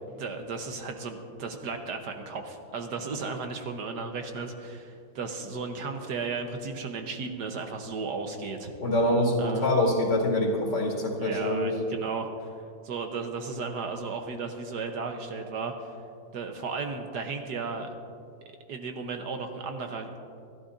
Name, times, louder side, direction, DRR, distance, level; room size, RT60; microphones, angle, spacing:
voice 1, 0.2-8.7 9.4-9.7 11.2-12.5 12.8-16.0 16.3-17.9 18.7-20.1, right 4 dB, 65° right, 5 dB, 1.4 m, -35 dB
voice 2, 8.8-11.7, left 1 dB, 65° left, 1 dB, 2.8 m, -25 dB
27.0 x 12.5 x 2.6 m, 2.4 s
omnidirectional pair, 2.1 m